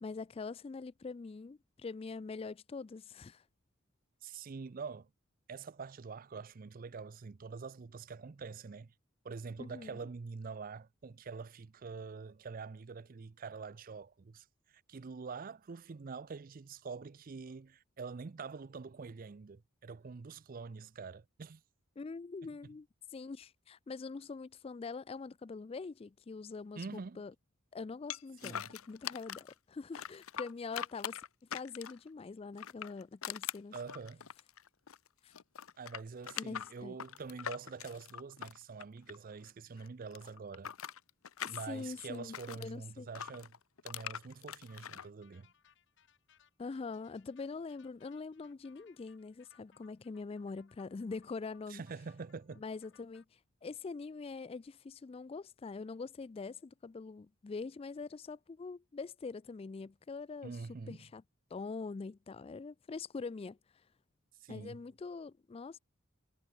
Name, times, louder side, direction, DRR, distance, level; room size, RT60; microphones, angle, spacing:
voice 1, 0.0-3.4 9.6-10.0 22.0-22.9 23.1-27.3 27.7-31.2 31.5-33.7 35.2-35.3 36.4-37.0 41.4-43.1 46.6-51.8 52.6-53.2 53.6-60.5 60.9-61.2 61.5-63.6 64.5-65.8, left 4 dB, 30° left, 0.3 m, -44 dB
voice 2, 4.2-5.1 5.5-8.9 9.2-21.6 26.8-27.2 28.4-28.8 33.7-34.3 35.8-40.7 41.4-43.6 43.8-45.5 51.7-52.6 60.4-61.0 64.4-64.8, right 4 dB, 40° right, 0.5 m, -45 dB
sound 1, 28.1-29.5 29.9-32.1 32.5-35.1 35.3-39.5 39.8-42.7 43.1-45.0, left 9 dB, 85° left, 0.8 m, -43 dB
sound 2, 44.7-53.2, left 7 dB, 60° left, 1.3 m, -68 dB
head